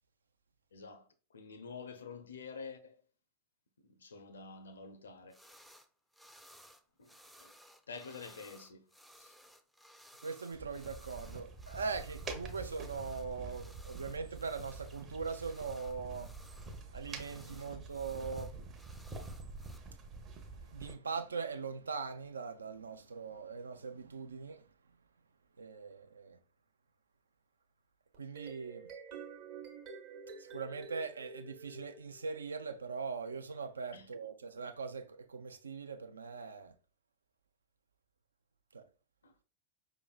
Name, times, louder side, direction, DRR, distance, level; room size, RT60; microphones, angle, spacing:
voice 1, 0.7-1.1 1.3-3.0 3.8-5.4 7.0-7.1 7.4-7.5 7.9-8.8 9.2-9.3 33.9-34.1 39.2-39.3, left 5 dB, 70° left, 0.5 m, -48 dB
sound 1, 5.3-5.9 6.1-19.8, equal, ahead, 0.4 m, -59 dB
voice 2, 10.2-18.6 20.7-24.6 25.6-26.4 28.2-28.9 30.4-36.7 38.7-38.8, right 5 dB, 75° right, 0.4 m, -41 dB
sound 2, 10.5-21.0, right 3 dB, 30° right, 0.7 m, -47 dB
sound 3, 28.1-32.5, right 5 dB, 50° right, 1.0 m, -49 dB
5.0 x 3.0 x 2.3 m
figure-of-eight pair, 90°, 0 cm